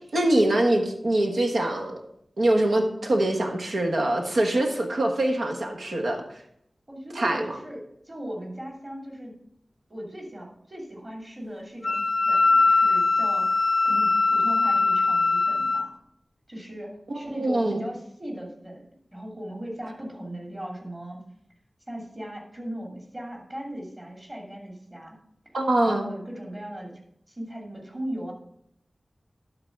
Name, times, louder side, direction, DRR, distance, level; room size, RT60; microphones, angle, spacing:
voice 1, 0.1-2.0 2.4-6.2 7.1-7.4 17.1-17.8 25.5-26.1, right 1 dB, 85° right, 2 dB, 1.4 m, -24 dB
voice 2, 6.9-9.3 9.9-16.0 16.5-18.9 19.1-21.2 21.9-25.2 25.8-26.9 27.3-28.3, equal, 30° right, 0 dB, 2.7 m, -38 dB
Wind instrument woodwind instrument, 11.8-15.9, left 3 dB, 50° left, 0.3 m, -21 dB
11.5 x 4.0 x 5.9 m, 0.73 s
wide cardioid pair, 60°, 0 cm